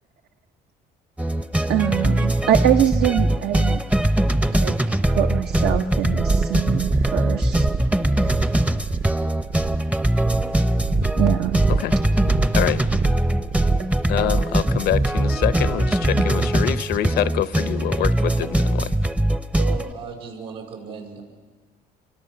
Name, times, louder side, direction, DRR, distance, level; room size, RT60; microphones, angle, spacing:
sound 1, 1.2-19.9, right 1 dB, 5° right, 0.6 m, -21 dB
voice 1, 1.7-3.8 4.5-7.7 8.1-8.5 11.2-11.7 13.8-13.9 16.1-16.2, right 11 dB, 70° right, 7 dB, 0.9 m, -24 dB
sound 2, 5.4-16.0, right 5 dB, 40° right, 0.8 m, -28 dB
voice 2, 14.1-18.9, left 12 dB, 70° left, 15 dB, 0.7 m, -25 dB
voice 3, 19.5-21.2, right 6 dB, 90° right, 0 dB, 5.9 m, -35 dB
28.0 x 24.0 x 6.8 m, 1.5 s
cardioid pair, 110°, 17 cm